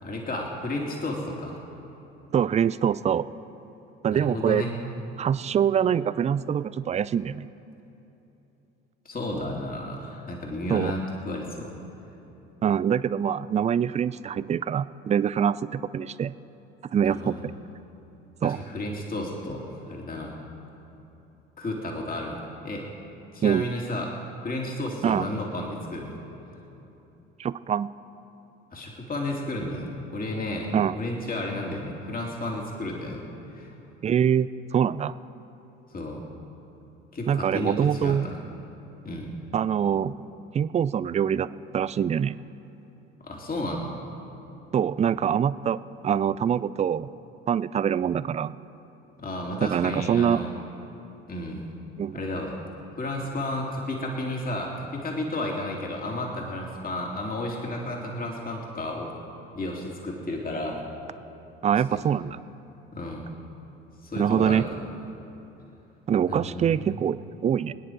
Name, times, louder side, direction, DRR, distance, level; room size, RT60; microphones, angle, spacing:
voice 1, 0.0-1.6 4.1-4.7 9.0-11.7 17.0-17.4 18.4-20.4 21.6-22.8 23.3-24.1 24.4-26.2 28.7-33.2 33.5-33.7 35.9-36.2 37.1-38.4 39.0-39.3 43.2-43.9 49.2-50.5 51.3-51.6 52.1-52.6 53.0-59.1 59.5-60.8 61.9-62.0 62.9-63.3 64.0-64.8 66.3-66.9, left 1 dB, 30° left, -1 dB, 2.8 m, -32 dB
voice 2, 2.3-3.3 4.0-4.7 5.2-7.5 10.7-10.9 12.6-16.3 16.9-17.5 18.4-18.6 23.4-23.7 25.0-25.2 27.4-27.9 30.7-31.0 34.0-35.1 37.3-38.3 39.5-40.1 40.5-41.5 41.7-42.4 44.7-45.8 46.0-47.1 47.5-48.6 49.6-50.4 52.0-52.2 61.6-62.4 64.2-64.7 66.1-67.2 67.4-67.7, right 8 dB, 20° right, 16 dB, 0.4 m, -24 dB
25.5 x 10.0 x 4.6 m, 3.0 s
hypercardioid pair, 60°, 31 cm